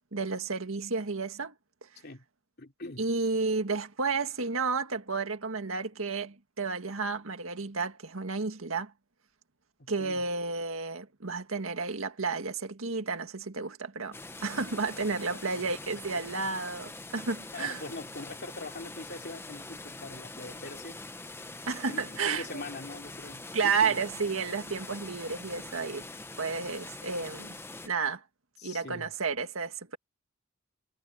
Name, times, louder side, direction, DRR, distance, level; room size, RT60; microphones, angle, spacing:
voice 1, 0.1-1.5 1.8-1.9 3.0-8.9 9.9-17.8 21.7-22.5 23.5-26.1 26.4-27.5 27.8-28.2 28.6-30.0, right 4 dB, 90° right, 1.8 m, -32 dB
voice 2, 2.6-3.1 9.8-10.2 15.2-15.5 16.1-16.2 17.5-21.0 21.9-24.0 28.6-29.1, left 2 dB, 55° left, 2.8 m, -43 dB
sound 1, 14.1-27.9, left 2 dB, 10° left, 0.9 m, -44 dB
head